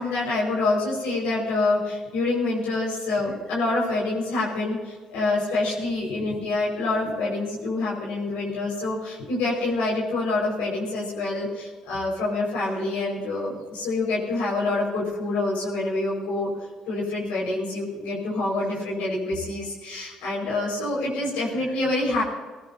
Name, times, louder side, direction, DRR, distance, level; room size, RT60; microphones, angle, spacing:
voice 1, 0.0-16.5 16.9-22.2, left 2 dB, 75° left, -5 dB, 5.4 m, -26 dB
20.0 x 17.5 x 2.8 m, 1.4 s
hypercardioid pair, 50°, 3 cm